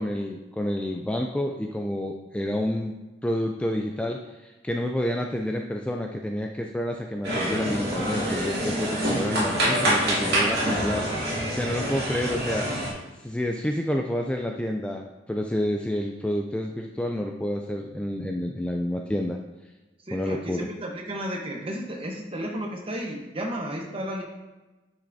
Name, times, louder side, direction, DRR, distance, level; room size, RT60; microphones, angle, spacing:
voice 1, 0.0-3.0 3.2-12.7 13.2-19.4 20.1-20.7, left 1 dB, 5° left, 2 dB, 0.3 m, -29 dB
sound 1, 7.2-12.9, right 1 dB, 60° right, 2.2 m, -26 dB
voice 2, 20.1-24.2, equal, 30° right, 1 dB, 1.0 m, -33 dB
8.6 x 5.7 x 2.7 m, 1.1 s
head